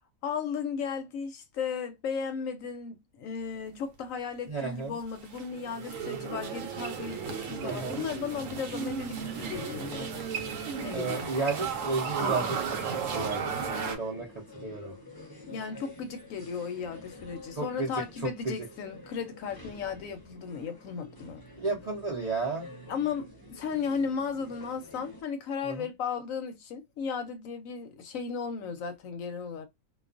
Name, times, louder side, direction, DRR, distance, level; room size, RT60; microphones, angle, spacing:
voice 1, 0.2-10.1 10.8-11.3 15.5-21.4 22.9-29.7, left 6 dB, 70° left, 0.9 m, -35 dB
voice 2, 4.5-4.9 6.2-6.3 7.6-8.0 10.9-12.8 13.1-14.3 14.5-14.9 17.6-17.9 18.4-18.5 21.6-22.7 25.7-25.9, right 3 dB, 50° right, 0.5 m, -32 dB
sound 1, 5.0-14.0, right 6 dB, 65° right, 0.9 m, -34 dB
sound 2, 7.1-25.2, left 2 dB, 25° left, 0.5 m, -49 dB
2.3 x 2.3 x 2.4 m
omnidirectional pair, 1.6 m